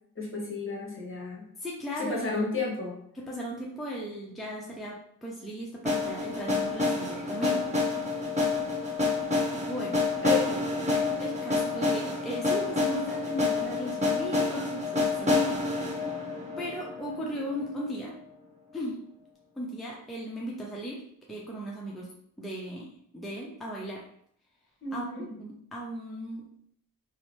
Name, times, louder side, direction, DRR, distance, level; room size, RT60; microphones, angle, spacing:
voice 1, 0.2-1.4 2.0-3.0 10.2-10.6 24.8-25.2, left 4 dB, 35° left, -2 dB, 1.0 m, -32 dB
voice 2, 1.6-2.5 3.1-7.6 8.1-8.3 9.7-10.0 10.5-10.6 11.2-15.6 15.9-16.2 16.6-18.2 18.7-19.0 19.6-21.0 21.3-22.1 22.4-22.9 23.1-24.0 24.9-26.4, equal, ahead, -4 dB, 0.5 m, -37 dB
sound 1, 5.9-17.8, left 3 dB, 20° right, 1.1 m, -28 dB
2.7 x 2.1 x 3.1 m, 0.67 s
cardioid pair, 65°, 36 cm